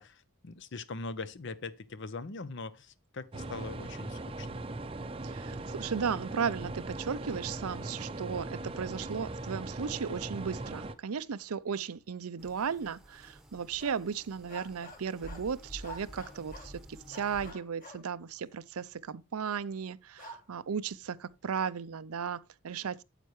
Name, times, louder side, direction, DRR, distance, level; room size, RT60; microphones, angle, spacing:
voice 1, 0.0-4.5, left 3 dB, 55° left, 0.7 m, -41 dB
sound 1, 3.3-10.9, right 2 dB, 25° right, 0.6 m, -39 dB
voice 2, 5.2-23.0, right 6 dB, 85° right, 0.5 m, -35 dB
sound 2, 12.4-17.5, equal, ahead, 1.1 m, -50 dB
sound 3, 13.7-14.1 14.5-15.5 15.8-16.8 17.1-18.1 20.2-20.5, equal, 40° left, 1.9 m, -48 dB
9.0 x 8.2 x 3.1 m
head